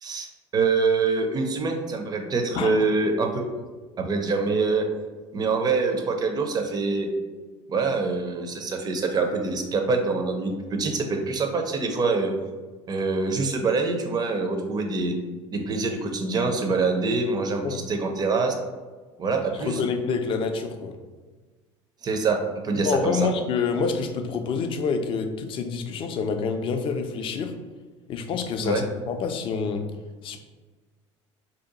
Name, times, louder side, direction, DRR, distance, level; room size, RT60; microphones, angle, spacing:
voice 1, 0.5-3.5 4.0-4.9 5.3-7.1 7.7-12.3 12.9-15.1 15.5-18.5 19.2-19.8 22.0-23.3 28.6-28.8, right 4 dB, 25° right, 4 dB, 0.5 m, -25 dB
voice 2, 19.6-21.0 22.8-27.6 28.1-29.9 30.2-30.4, left 5 dB, 35° left, 6 dB, 0.4 m, -27 dB
2.7 x 2.2 x 3.9 m, 1.4 s
figure-of-eight pair, 65°, 16 cm